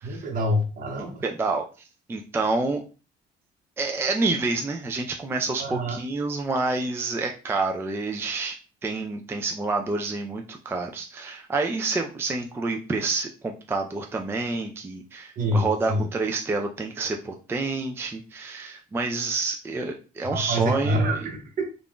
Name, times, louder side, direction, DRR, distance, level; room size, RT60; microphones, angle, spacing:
voice 1, 0.0-1.2 5.6-6.0 15.4-16.1 20.3-21.6, equal, 55° right, 3 dB, 1.0 m, -26 dB
voice 2, 1.0-1.6 2.1-2.8 3.8-21.3, right 3 dB, 15° right, 3 dB, 0.3 m, -28 dB
2.5 x 2.2 x 3.5 m, 0.34 s
cardioid pair, 110°, 17 cm